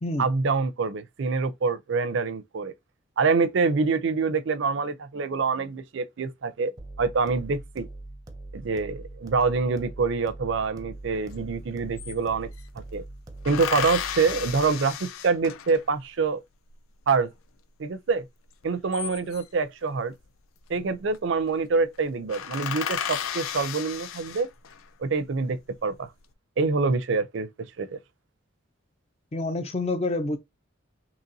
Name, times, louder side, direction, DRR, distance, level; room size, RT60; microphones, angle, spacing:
voice 1, 0.2-2.7 3.2-6.7 7.0-7.9 8.5-12.5 12.9-13.0 13.4-16.4 17.1-17.3 17.8-18.3 18.6-20.1 20.7-24.5 25.0-26.1 26.6-27.5 27.8-28.0, right 4 dB, 65° right, 0.4 m, -26 dB
sound 1, 6.8-14.8, right 2 dB, 20° right, 0.6 m, -42 dB
sound 2, 11.3-11.4 11.6-12.7 13.4-16.0 18.6-19.6 20.8-21.2 21.5-21.6 21.9-22.0 22.3-24.8 25.4-26.1, left 8 dB, 85° left, 0.4 m, -33 dB
voice 2, 29.3-30.4, left 2 dB, 30° left, 0.5 m, -27 dB
3.9 x 2.9 x 2.7 m
head